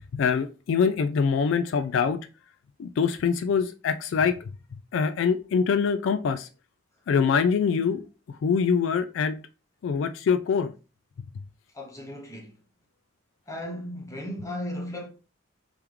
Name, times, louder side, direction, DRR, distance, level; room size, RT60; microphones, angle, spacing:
voice 1, 0.1-2.2 2.8-4.4 4.7-6.5 7.1-8.0 8.3-9.3 9.8-10.7, left 6 dB, 70° left, 0.3 m, -24 dB
voice 2, 11.7-12.5 13.5-15.1, left 1 dB, 15° left, 0.9 m, -35 dB
3.5 x 3.0 x 3.5 m
head